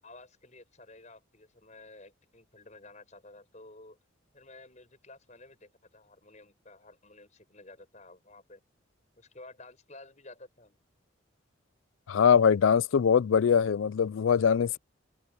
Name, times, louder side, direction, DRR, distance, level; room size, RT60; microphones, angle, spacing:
voice 1, 0.0-4.0 4.3-8.6 9.2-10.8, left 2 dB, 35° left, 7.6 m, -52 dB
voice 2, 12.1-14.8, left 7 dB, 75° left, 0.4 m, -22 dB
head